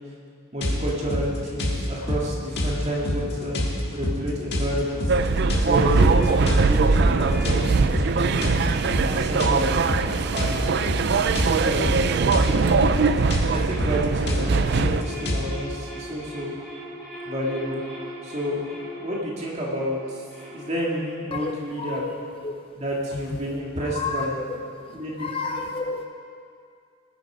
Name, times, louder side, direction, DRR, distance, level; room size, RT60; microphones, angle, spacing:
voice 1, 0.5-8.4 9.0-9.7 10.3-10.7 11.4-12.7 13.5-16.5 17.2-17.8 18.2-20.2 20.5-22.0 22.7-24.4 24.9-25.3, equal, 30° right, -4 dB, 2.3 m, -30 dB
sound 1, 0.6-15.5, left 1 dB, 50° left, 1.7 m, -28 dB
sound 2, 5.1-15.0, right 4 dB, 50° right, 0.4 m, -21 dB
sound 3, 5.8-13.0 13.4-21.3, equal, ahead, 3.9 m, -42 dB
voice 2, 21.8-22.2 22.4-22.5 23.9-24.6 25.2-26.1, left 4 dB, 25° left, 4 dB, 0.5 m, -30 dB
19.0 x 8.2 x 5.1 m, 2.3 s
head